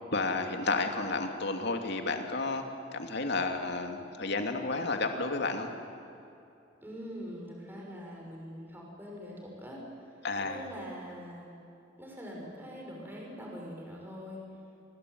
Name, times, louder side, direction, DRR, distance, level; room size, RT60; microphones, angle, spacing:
voice 1, 0.1-2.6 2.9-5.7 10.2-10.6, left 3 dB, 60° left, 5 dB, 2.7 m, -31 dB
voice 2, 6.8-11.6 12.0-14.4, equal, 10° right, -2 dB, 6.4 m, -43 dB
29.5 x 21.5 x 9.5 m, 2.7 s
head